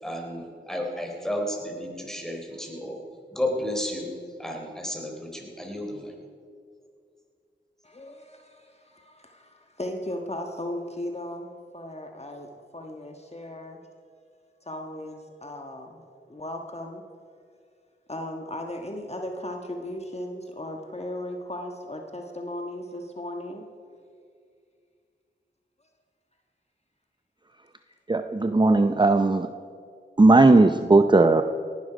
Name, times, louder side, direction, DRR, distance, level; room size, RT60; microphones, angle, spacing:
voice 1, 0.0-3.0 3.3-6.1, left 1 dB, ahead, 1 dB, 3.7 m, -32 dB
voice 2, 7.8-13.8 14.6-17.0 18.1-23.6, left 1 dB, 35° left, 3 dB, 1.5 m, -37 dB
voice 3, 28.1-29.5 30.2-31.4, right 2 dB, 25° right, 9 dB, 0.6 m, -17 dB
18.0 x 11.5 x 5.1 m, 2.3 s
cardioid pair, 40°, 20 cm